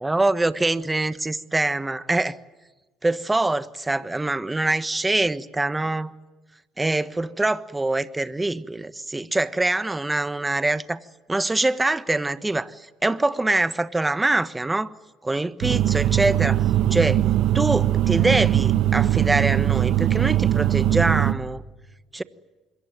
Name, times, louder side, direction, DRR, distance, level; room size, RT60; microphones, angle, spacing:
voice 1, 0.0-2.4 3.0-6.1 6.8-11.0 11.3-14.9 15.2-17.2 17.5-21.6 22.1-22.2, right 2 dB, 15° right, 13 dB, 1.4 m, -24 dB
sound 1, 15.6-21.3, right 12 dB, 70° right, 1.7 m, -20 dB
26.5 x 22.5 x 9.5 m, 1.2 s
supercardioid pair, 75°, 0 cm